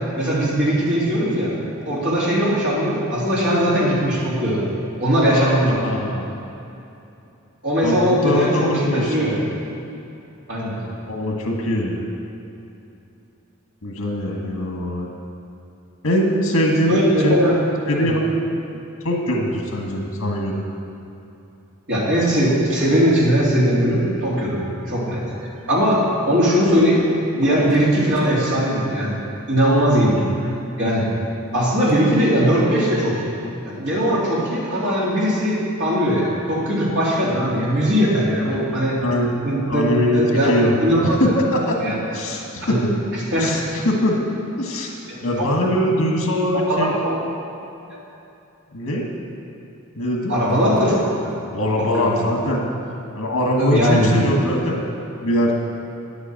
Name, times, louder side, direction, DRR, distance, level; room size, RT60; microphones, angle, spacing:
voice 1, 0.2-1.5 1.8-4.6 5.0-5.8 7.6-9.3 10.5-10.8 16.9-17.5 17.9-18.1 21.9-24.6 24.9-25.3 25.7-27.1 27.4-29.2 29.5-30.2 30.8-31.0 31.5-33.3 33.6-39.0 39.4-39.8 40.1-40.5 40.8-41.2 41.8-42.0 42.7-42.8 43.3-43.5 45.1-45.5 46.7-47.1 47.9-48.0 50.3-51.3 51.8-52.1 53.6-54.1, equal, 55° right, -7 dB, 3.3 m, -19 dB
voice 2, 5.3-6.3 7.8-9.3 11.1-12.0 13.8-15.1 16.0-17.4 17.9-18.2 19.0-20.6 38.5-38.6 39.0-39.3 39.7-40.7 41.0-41.8 42.1-43.0 43.4-44.3 44.6-44.9 45.2-46.9 48.7-49.0 50.0-50.3 51.5-52.7 53.1-54.8 55.2-55.5, equal, 85° left, -1 dB, 1.6 m, -22 dB
9.9 x 8.2 x 7.7 m, 2.8 s
head